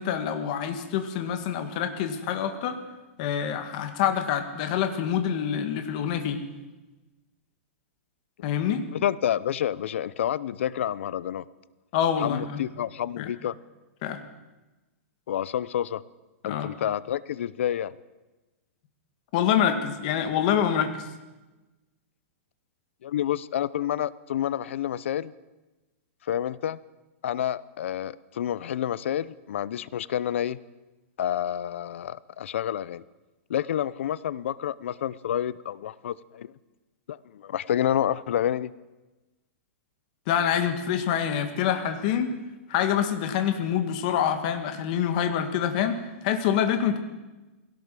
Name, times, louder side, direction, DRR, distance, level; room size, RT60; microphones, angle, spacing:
voice 1, 0.0-2.8 3.2-6.4 8.4-8.9 11.9-12.6 13.2-13.3 14.0-14.2 16.5-16.7 19.3-21.0 40.3-42.3 42.7-47.0, left 9 dB, 35° left, 7 dB, 1.9 m, -26 dB
voice 2, 8.9-11.4 12.2-13.6 15.3-16.0 16.4-17.9 23.0-25.3 26.3-26.8 27.2-30.6 31.2-33.0 33.5-36.5 37.1-38.7, left 10 dB, 60° left, 20 dB, 0.7 m, -29 dB
20.0 x 17.0 x 7.6 m, 1.1 s
supercardioid pair, 175°, 7 cm